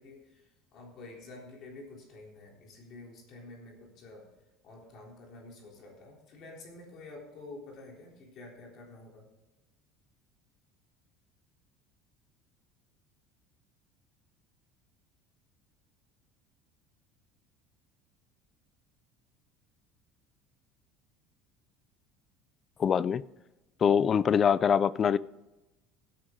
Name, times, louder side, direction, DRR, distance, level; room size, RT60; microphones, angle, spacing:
voice 1, 0.0-4.3 4.6-9.2, left 2 dB, 40° left, 3.7 m, -49 dB
voice 2, 22.8-23.2 23.8-25.2, left 7 dB, 25° left, 0.3 m, -24 dB
17.0 x 8.8 x 3.8 m
cardioid pair, 165°, 0 cm